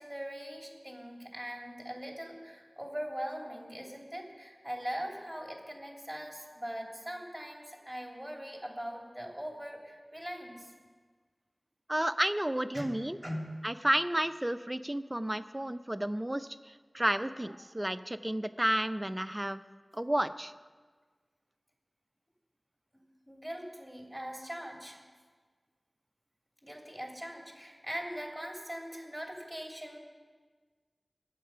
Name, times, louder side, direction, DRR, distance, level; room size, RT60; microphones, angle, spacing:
voice 1, 0.0-10.7 12.7-12.9 13.2-13.7 22.9-25.0 26.6-30.0, equal, ahead, 0 dB, 3.0 m, -41 dB
voice 2, 11.9-13.2 13.6-19.6 19.9-20.5, right 1 dB, 20° right, 11 dB, 0.5 m, -31 dB
22.5 x 7.6 x 5.6 m, 1.5 s
wide cardioid pair, 50°, 0 cm